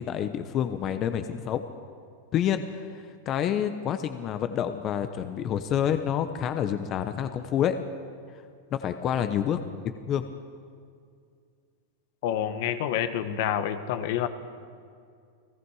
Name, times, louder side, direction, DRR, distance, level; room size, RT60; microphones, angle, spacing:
voice 1, 0.0-1.7 2.3-7.8 8.7-9.6 10.1-10.3, left 9 dB, 35° left, 9 dB, 1.0 m, -28 dB
voice 2, 12.2-14.3, left 10 dB, 60° left, 10 dB, 1.3 m, -28 dB
30.0 x 18.0 x 4.9 m, 2.3 s
hypercardioid pair, 120°, 0 cm